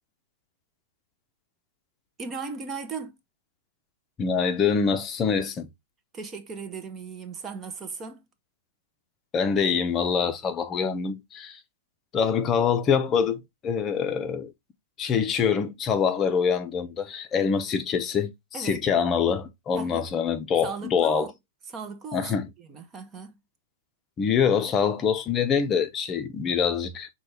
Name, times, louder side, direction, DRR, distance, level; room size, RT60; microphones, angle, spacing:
voice 1, 2.2-3.2 6.1-8.2 18.5-18.8 19.7-20.1 20.6-21.3 21.7-22.3 22.6-23.4, right 5 dB, 20° right, 0.7 m, -37 dB
voice 2, 4.2-5.7 9.3-11.6 12.1-14.5 15.0-18.3 18.6-21.3 22.1-22.4 24.2-27.1, left 6 dB, 20° left, 0.7 m, -25 dB
6.1 x 2.3 x 3.4 m
hypercardioid pair, 140°, 0 cm